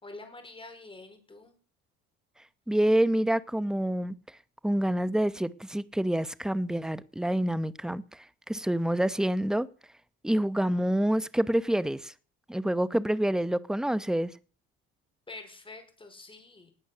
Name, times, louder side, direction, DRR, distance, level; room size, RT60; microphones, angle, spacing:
voice 1, 0.0-1.5 15.3-16.7, left 2 dB, 20° left, 4.6 m, -46 dB
voice 2, 2.7-4.1 4.6-8.0 8.5-9.7 10.2-12.1 12.5-14.3, right 1 dB, ahead, 0.8 m, -27 dB
19.0 x 6.4 x 6.6 m
cardioid pair, 100°, 29 cm